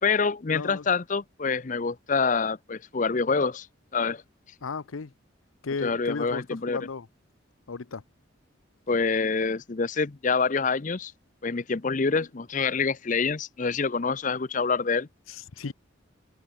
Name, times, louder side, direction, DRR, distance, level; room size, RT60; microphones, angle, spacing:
voice 1, 0.0-3.7 3.9-4.2 5.8-6.8 8.9-11.1 11.4-15.1, left 4 dB, 40° left, 0.6 m, -26 dB
voice 2, 0.5-0.8 4.6-5.1 5.6-7.1 7.7-8.0 15.3-15.7, left 4 dB, 85° left, 0.7 m, -34 dB
head